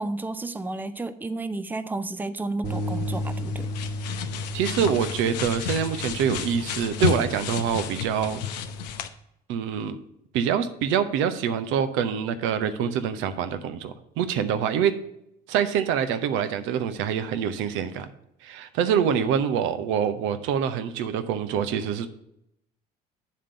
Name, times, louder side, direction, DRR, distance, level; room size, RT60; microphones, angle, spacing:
voice 1, 0.0-3.7, right 2 dB, 10° right, 0.6 m, -32 dB
sound 1, 2.6-8.9, left 1 dB, 40° right, 1.4 m, -34 dB
sound 2, 2.7-9.1, left 8 dB, 85° left, 0.6 m, -32 dB
voice 2, 4.5-8.4 9.5-10.0 10.3-15.0 15.5-18.1 18.4-22.1, right 8 dB, 70° right, 0.8 m, -25 dB
9.5 x 3.7 x 6.8 m
hypercardioid pair, 65°, 21 cm